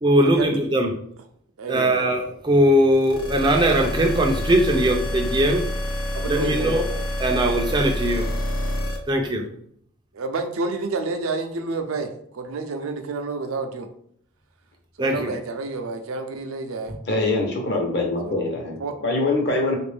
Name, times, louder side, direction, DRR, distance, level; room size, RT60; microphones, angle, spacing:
voice 1, 0.0-0.9 1.7-5.6 6.3-8.3 9.1-9.4 15.0-15.3, right 1 dB, 20° right, 2 dB, 0.4 m, -20 dB
voice 2, 1.6-2.1 6.1-6.9 10.1-13.9 15.0-17.0 18.2-18.5 18.8-19.0, right 3 dB, 80° right, 7 dB, 0.5 m, -29 dB
sound 1, 3.0-9.0, left 1 dB, 85° left, 0.7 m, -27 dB
voice 3, 17.1-19.8, left 2 dB, 50° left, 1 dB, 0.9 m, -24 dB
3.4 x 2.5 x 3.3 m, 0.66 s
head